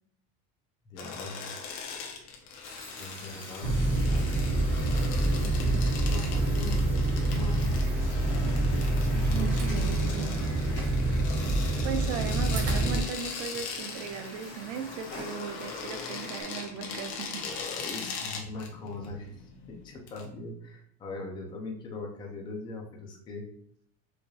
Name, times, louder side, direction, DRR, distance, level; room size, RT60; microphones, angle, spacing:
voice 1, 0.9-1.5 3.0-3.7 5.2-7.9 8.9-10.0 17.3-19.4 19.7-23.4, left 3 dB, 15° left, -1 dB, 0.3 m, -40 dB
sound 1, 1.0-20.2, left 5 dB, 65° left, 0.9 m, -41 dB
sound 2, 2.6-16.4, left 2 dB, 30° left, 1.3 m, -45 dB
sound 3, 3.6-13.0, right 1 dB, 85° right, 0.9 m, -26 dB
voice 2, 9.2-10.5 11.8-17.4, right 7 dB, 50° right, 7 dB, 0.5 m, -37 dB
4.7 x 2.7 x 2.3 m, 0.67 s
cardioid pair, 180°, 37 cm